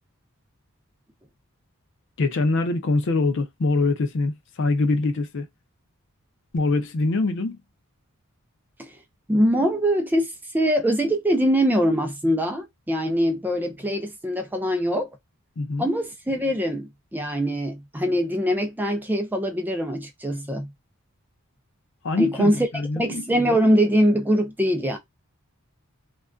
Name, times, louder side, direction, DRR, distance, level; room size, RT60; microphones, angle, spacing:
voice 1, 2.2-5.5 6.5-7.6 15.6-15.9 22.0-23.2, left 3 dB, 55° left, 0.5 m, -24 dB
voice 2, 9.3-15.1 15.8-20.7 22.2-22.7 23.0-25.0, equal, 10° right, 0.4 m, -23 dB
2.4 x 2.2 x 2.2 m
head